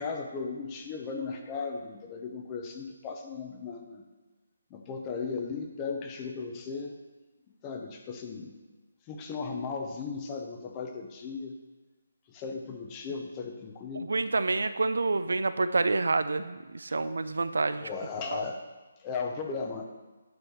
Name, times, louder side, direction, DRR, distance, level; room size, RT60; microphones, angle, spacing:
voice 1, 0.0-4.0 4.7-6.9 7.6-8.5 9.1-11.5 12.3-14.1 17.8-18.6 19.0-19.8, left 5 dB, 20° left, 3 dB, 0.7 m, -36 dB
voice 2, 13.9-17.9 18.3-18.4, right 3 dB, 80° right, 12 dB, 0.4 m, -28 dB
9.3 x 3.3 x 5.6 m, 1.2 s
hypercardioid pair, 160°, 0 cm